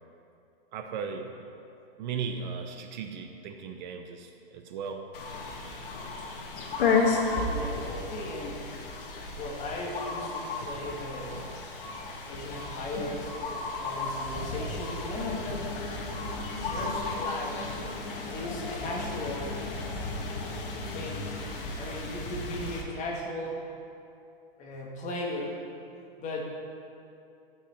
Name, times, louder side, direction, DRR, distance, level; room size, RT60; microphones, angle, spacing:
voice 1, 0.7-1.5 2.0-5.1, right 6 dB, 50° right, 5 dB, 0.8 m, -37 dB
sound 1, 5.1-22.8, left 3 dB, 65° left, 1.6 m, -33 dB
voice 2, 7.4-8.7 9.4-11.5 12.3-15.8 16.7-17.8 18.2-19.7 20.9-21.4 21.8-23.6 24.6-25.6 26.2-26.5, left 1 dB, 25° left, -2 dB, 1.7 m, -37 dB
sound 2, 15.2-21.4, left 4 dB, 45° left, 0.9 m, -41 dB
12.5 x 5.9 x 4.4 m, 2.6 s
hypercardioid pair, 130°, 30 cm